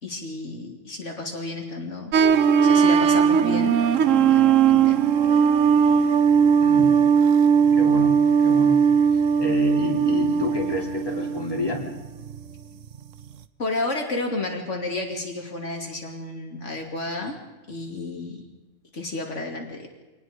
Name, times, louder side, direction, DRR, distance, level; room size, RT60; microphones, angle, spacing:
voice 1, 0.0-3.8 4.1-5.0 13.6-17.4 17.7-18.4 18.9-19.9, left 2 dB, 70° left, 1 dB, 3.0 m, -31 dB
sound 1, 2.1-11.5 12.0-12.4, right 7 dB, 90° right, 1.2 m, -18 dB
voice 2, 6.6-6.9 7.7-8.1 8.4-8.8 9.4-11.9, left 1 dB, 20° left, -1 dB, 3.8 m, -28 dB
26.0 x 19.5 x 5.2 m, 1.2 s
omnidirectional pair, 1.3 m